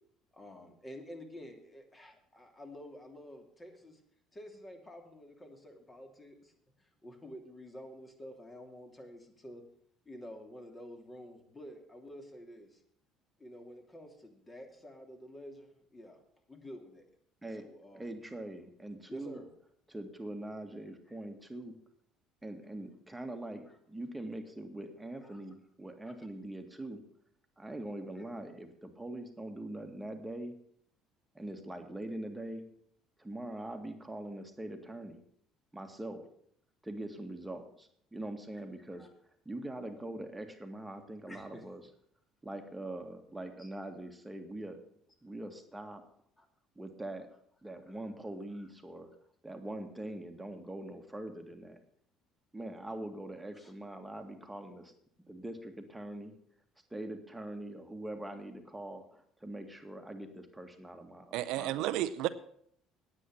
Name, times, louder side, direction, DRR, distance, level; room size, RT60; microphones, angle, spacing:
voice 1, 0.3-4.0 4.3-6.5 6.8-9.6 10.0-12.8 13.4-16.2 16.5-17.1 17.6-18.1 19.1-19.5 23.7-23.8 25.2-25.4 26.0-26.3 28.2-28.3 38.5-38.6 38.9-39.1 41.3-41.6 43.6-43.7 46.4-46.5 48.6-48.7 53.5-53.7, equal, 20° left, 2.9 m, -50 dB
voice 2, 17.9-19.4 19.9-21.8 22.4-27.0 27.6-30.6 31.3-32.7 33.2-35.2 35.7-36.2 36.8-39.1 39.5-41.8 42.4-44.8 45.2-46.0 46.8-47.3 47.6-49.1 49.4-51.8 52.5-54.9 55.2-56.3 56.9-61.7, right 1 dB, 10° right, 2.0 m, -43 dB
voice 3, 61.3-62.3, right 14 dB, 75° right, 0.6 m, -32 dB
9.8 x 8.7 x 7.4 m
supercardioid pair, 75°, 0 cm